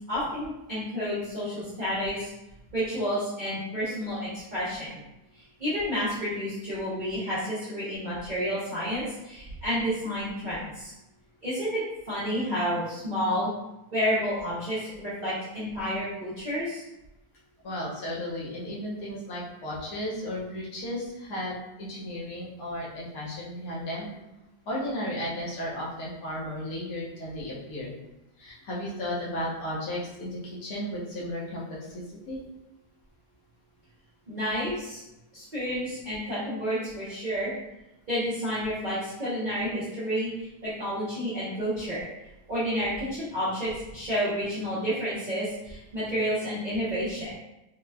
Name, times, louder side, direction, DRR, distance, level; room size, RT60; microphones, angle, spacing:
voice 1, 0.1-2.3 2.7-5.0 5.6-10.9 11.4-13.5 13.9-16.8 34.3-35.0 35.3-37.5 38.1-42.1 42.5-47.4, equal, 40° right, -11 dB, 0.7 m, -30 dB
voice 2, 17.6-24.1 24.7-27.9 28.4-32.4, left 1 dB, 75° left, -6 dB, 1.4 m, -34 dB
4.1 x 2.2 x 2.2 m, 0.93 s
omnidirectional pair, 1.6 m